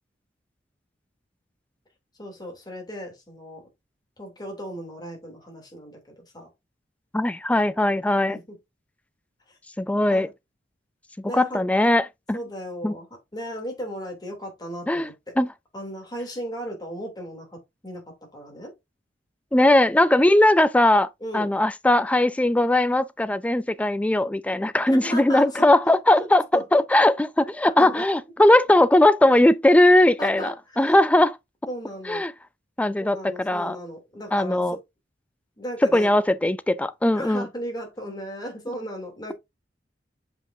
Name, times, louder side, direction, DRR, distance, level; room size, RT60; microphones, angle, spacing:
voice 1, 2.2-3.7 4.2-6.5 8.3-8.4 9.5-9.6 10.1-10.3 11.2-11.6 12.3-13.1 13.3-15.3 15.7-18.7 21.2-21.5 24.9-26.3 26.5-27.1 27.6-28.1 30.2-30.9 31.7-32.2 33.0-34.8 35.6-36.1 37.1-39.3, equal, 25° left, 2.9 m, -36 dB
voice 2, 7.1-8.4 9.8-10.3 11.3-12.4 12.8-12.9 14.9-15.1 15.4-15.5 19.5-26.4 26.7-31.4 32.1-32.3 32.8-33.8 34.3-34.8 35.9-37.5, left 1 dB, 10° left, 0.3 m, -19 dB
7.7 x 5.3 x 2.7 m
head